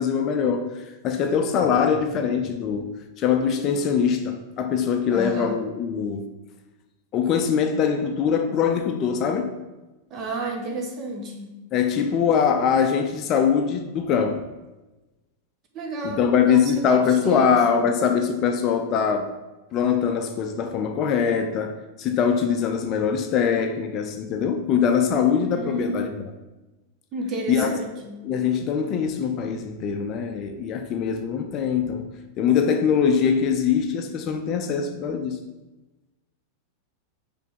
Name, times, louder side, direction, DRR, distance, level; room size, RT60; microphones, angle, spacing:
voice 1, 0.0-6.2 7.1-9.6 11.7-14.5 16.0-19.3 19.7-26.1 27.5-27.7 28.2-32.1 32.4-35.4, left 7 dB, 35° left, 0.6 m, -23 dB
voice 2, 5.1-5.6 10.1-11.5 15.7-17.9 25.4-26.1 27.1-28.2, right 2 dB, 30° right, 1.2 m, -32 dB
5.9 x 3.4 x 5.9 m
figure-of-eight pair, 90°, 0 cm